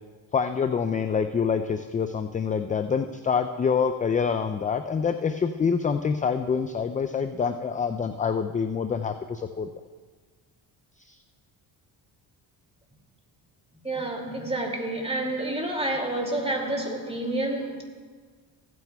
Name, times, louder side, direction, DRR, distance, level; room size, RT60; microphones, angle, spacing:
voice 1, 0.3-9.7 11.1-11.2, left 6 dB, 20° left, 8 dB, 0.3 m, -26 dB
voice 2, 13.8-17.8, right 1 dB, 10° right, 1 dB, 2.4 m, -29 dB
16.0 x 9.3 x 2.3 m, 1.5 s
supercardioid pair, 65°, 47 cm